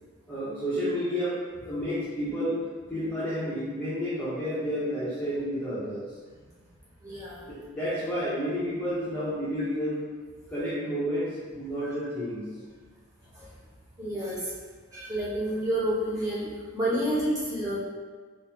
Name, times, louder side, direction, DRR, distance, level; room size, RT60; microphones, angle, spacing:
voice 1, 0.3-1.4 1.6-2.6 2.9-6.1 7.4-10.0 10.5-12.6, equal, 5° left, -12 dB, 0.7 m, -30 dB
voice 2, 7.0-7.4 13.3-13.5 14.0-14.5 14.9-17.8, right 1 dB, 15° right, -9 dB, 1.0 m, -29 dB
4.8 x 2.0 x 3.3 m, 1.4 s
head